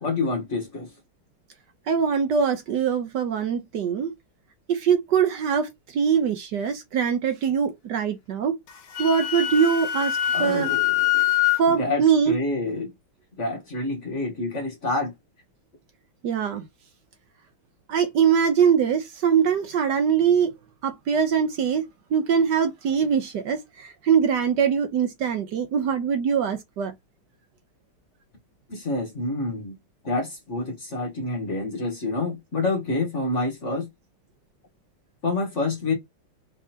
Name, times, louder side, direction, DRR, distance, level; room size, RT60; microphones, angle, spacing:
voice 1, 0.0-0.9 10.3-11.1 11.7-12.9 13.4-15.1 28.7-29.7 30.0-33.9 35.2-35.9, left 2 dB, 40° left, 1.2 m, -27 dB
voice 2, 1.9-4.1 4.7-5.7 5.9-8.6 9.0-10.7 11.6-12.4 16.2-16.6 17.9-20.5 20.8-21.8 22.1-26.9, right 7 dB, 65° right, 1.2 m, -22 dB
Wind instrument woodwind instrument, 8.7-11.6, left 13 dB, 80° left, 0.8 m, -24 dB
4.9 x 3.5 x 2.8 m
omnidirectional pair, 2.4 m